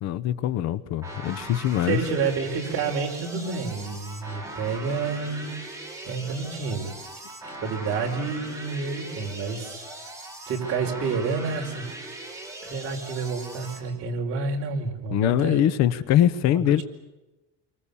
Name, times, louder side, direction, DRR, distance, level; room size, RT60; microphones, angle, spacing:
voice 1, 0.0-2.0 15.1-16.8, left 12 dB, 45° left, 14 dB, 1.0 m, -22 dB
sound 1, 1.0-13.8, right 2 dB, 10° right, 5.5 m, -40 dB
voice 2, 1.9-5.5 6.0-6.9 7.4-9.8 10.5-11.9 12.6-15.6, right 4 dB, 40° right, 2 dB, 4.7 m, -29 dB
27.5 x 24.5 x 7.1 m, 1.1 s
cardioid pair, 155°, 37 cm